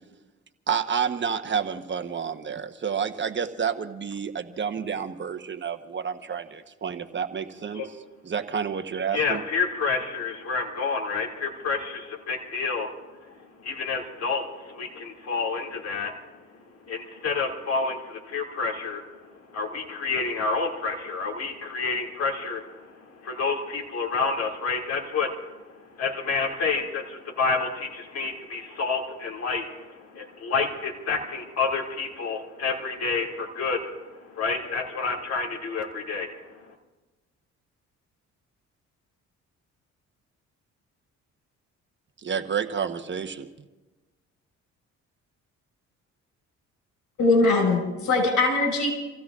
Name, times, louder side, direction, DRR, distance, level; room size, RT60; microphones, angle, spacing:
voice 1, 0.7-7.8 8.2-9.4 42.2-43.5, right 7 dB, 40° right, 8 dB, 1.1 m, -29 dB
voice 2, 9.1-16.1 16.9-19.0 19.5-36.3 36.7-36.8, left 4 dB, 55° left, 0 dB, 2.4 m, -29 dB
voice 3, 47.2-48.9, left 3 dB, 85° left, 1 dB, 5.1 m, -21 dB
29.5 x 16.0 x 2.5 m, 1.2 s
cardioid pair, 90°, 30 cm